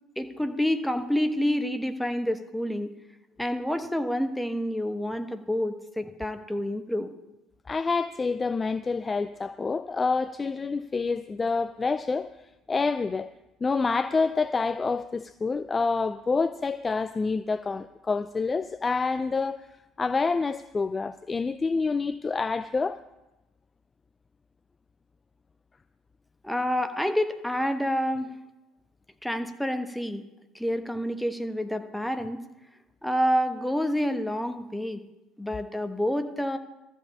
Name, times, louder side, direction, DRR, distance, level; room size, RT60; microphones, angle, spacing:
voice 1, 0.2-2.9 3.4-7.1 26.4-28.4 29.2-30.2 30.5-32.4 33.0-35.0 35.4-36.6, equal, 5° left, 1.1 m, -28 dB
voice 2, 7.7-12.3 12.7-13.3 13.6-19.7 20.0-23.0, left 4 dB, 25° left, 0.3 m, -27 dB
13.0 x 5.5 x 8.5 m
figure-of-eight pair, 60°, 0 cm